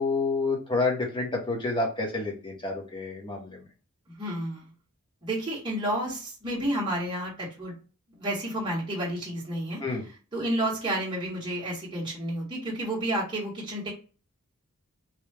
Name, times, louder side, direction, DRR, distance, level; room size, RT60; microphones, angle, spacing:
voice 1, 0.0-3.6 9.8-10.1, left 3 dB, 20° left, -1 dB, 1.0 m, -29 dB
voice 2, 4.1-4.7 5.2-7.7 8.1-9.8 10.3-13.9, right 1 dB, 20° right, -5 dB, 0.9 m, -30 dB
3.1 x 2.2 x 3.3 m, 0.35 s
head